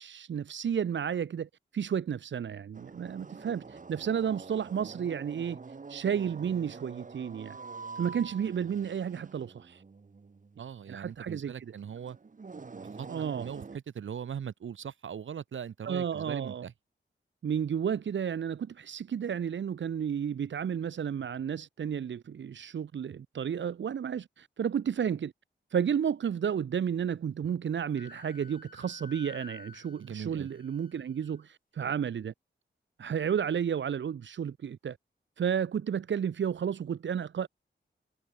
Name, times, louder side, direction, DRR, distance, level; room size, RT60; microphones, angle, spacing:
voice 1, 0.0-5.6 5.9-7.6 8.0-9.8 10.9-11.5 13.1-13.5 15.9-16.6 17.4-25.3 25.7-32.3 33.0-35.0 35.4-37.5, right 8 dB, 75° right, 0.9 m, -32 dB
sound 1, 2.7-13.8, right 4 dB, 40° right, 1.9 m, -46 dB
voice 2, 10.6-12.2 13.0-13.1 13.4-16.7 30.0-30.5, right 8 dB, 90° right, 2.7 m, -40 dB
Wind instrument woodwind instrument, 27.9-31.4, left 4 dB, 45° left, 5.5 m, -51 dB
cardioid pair, 75°, 19 cm